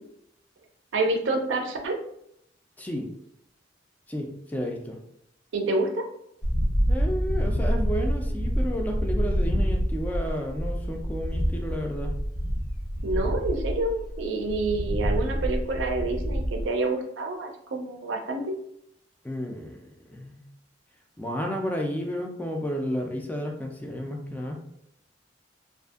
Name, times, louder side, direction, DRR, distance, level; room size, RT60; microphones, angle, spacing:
voice 1, 0.9-2.0 5.5-6.0 13.0-18.5, right 2 dB, 75° right, 3 dB, 0.5 m, -28 dB
voice 2, 2.8-3.1 4.1-5.0 6.9-12.1 19.2-20.4 21.2-24.6, equal, 10° left, 1 dB, 0.3 m, -32 dB
sound 1, 6.4-16.6, equal, 55° left, 0.7 m, -27 dB
2.6 x 2.4 x 2.3 m, 0.75 s
head